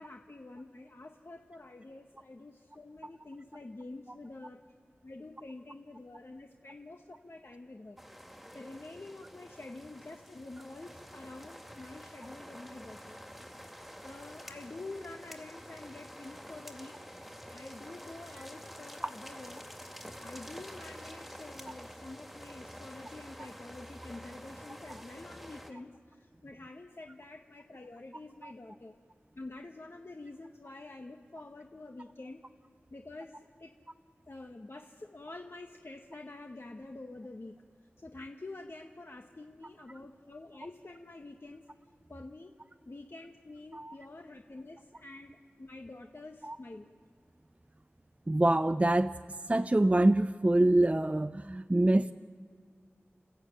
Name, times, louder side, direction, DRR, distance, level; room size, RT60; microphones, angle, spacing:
voice 1, 0.0-4.6 5.0-8.0 8.5-13.2 14.0-17.0 17.5-19.6 20.2-28.9 29.3-32.4 32.9-33.7 34.3-41.7 42.1-42.5 42.8-46.9, left 2 dB, 55° left, 2 dB, 1.4 m, -47 dB
sound 1, 8.0-25.7, equal, ahead, 2.3 m, -48 dB
voice 2, 48.3-49.1 49.5-52.1, right 1 dB, 30° right, 10 dB, 0.6 m, -25 dB
30.0 x 14.0 x 9.1 m, 2.1 s
wide cardioid pair, 45°, 5 cm